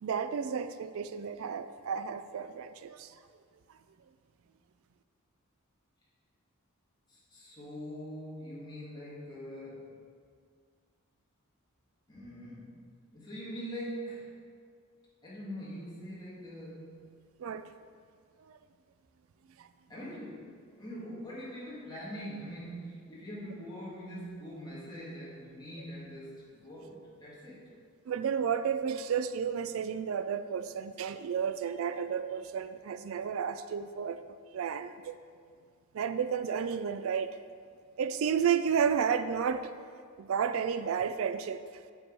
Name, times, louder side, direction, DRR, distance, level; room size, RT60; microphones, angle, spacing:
voice 1, 0.0-3.1 17.4-17.7 18.4-18.6 19.6-19.7 28.1-34.2 34.5-35.2 35.9-37.4 38.0-39.8 40.2-41.6, right 7 dB, 70° right, 11 dB, 0.3 m, -32 dB
voice 2, 7.1-10.0 12.1-12.9 13.1-14.3 15.2-17.0 19.9-27.7, equal, 20° left, -7 dB, 2.0 m, -43 dB
8.0 x 6.0 x 4.6 m, 2.1 s
head